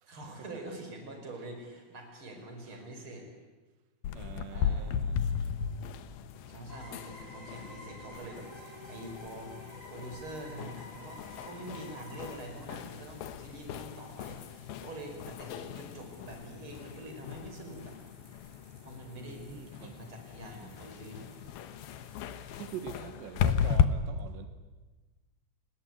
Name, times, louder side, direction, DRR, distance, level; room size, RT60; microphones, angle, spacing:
voice 1, 0.1-3.2 4.5-4.9 6.5-17.9 18.8-21.3, right 1 dB, 30° right, 5.9 m, -45 dB
sound 1, 4.0-23.9, left 8 dB, 70° left, 2.8 m, -36 dB
voice 2, 4.1-5.3 19.2-20.1 22.4-24.5, right 9 dB, 80° right, 3.6 m, -45 dB
sound 2, 6.7-12.4, left 1 dB, 20° left, 6.3 m, -49 dB
sound 3, 8.3-23.3, right 1 dB, 5° right, 5.1 m, -63 dB
30.0 x 20.5 x 9.8 m
omnidirectional pair, 5.0 m